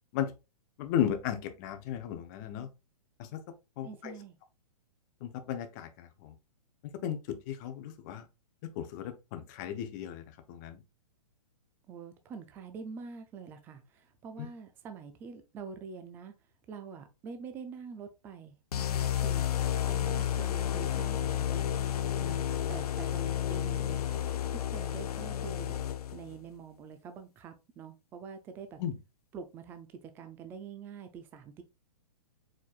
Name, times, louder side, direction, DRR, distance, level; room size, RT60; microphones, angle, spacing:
voice 1, 0.8-2.7 3.2-3.4 3.8-4.1 5.2-6.3 7.0-8.3 8.6-10.8 28.8-29.0, left 10 dB, 30° left, 0.7 m, -35 dB
voice 2, 3.8-4.4 11.9-16.3 16.7-19.5 19.9-21.8 22.2-24.0 24.5-25.8 26.1-28.8 29.3-31.6, right 5 dB, 10° right, 0.4 m, -46 dB
sound 1, 18.7-26.3, left 10 dB, 85° left, 0.5 m, -31 dB
4.5 x 4.4 x 2.3 m
hypercardioid pair, 150°, 19 cm